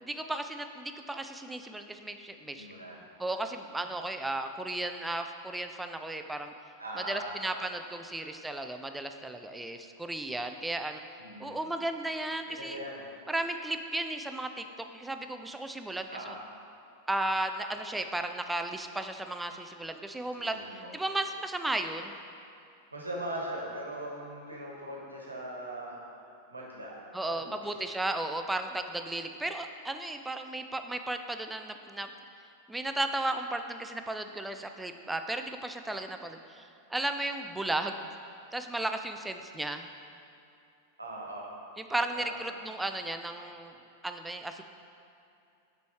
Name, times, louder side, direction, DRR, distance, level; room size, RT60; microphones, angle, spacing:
voice 1, 0.0-2.7 3.2-6.5 7.1-11.0 11.4-12.8 13.3-16.1 17.1-20.6 20.9-22.2 27.1-32.1 32.7-36.6 36.9-38.0 38.5-39.9 41.8-43.7 44.0-44.6, right 2 dB, 5° right, 7 dB, 0.4 m, -34 dB
voice 2, 2.5-3.0 6.8-7.7 11.2-11.6 12.4-13.0 16.1-16.4 20.3-21.0 22.9-26.0 26.5-27.0 27.3-28.0 28.7-28.9 41.0-41.5 42.1-42.5, right 1 dB, 80° right, -3 dB, 1.3 m, -40 dB
6.8 x 4.6 x 4.6 m, 2.6 s
figure-of-eight pair, 90°, 0 cm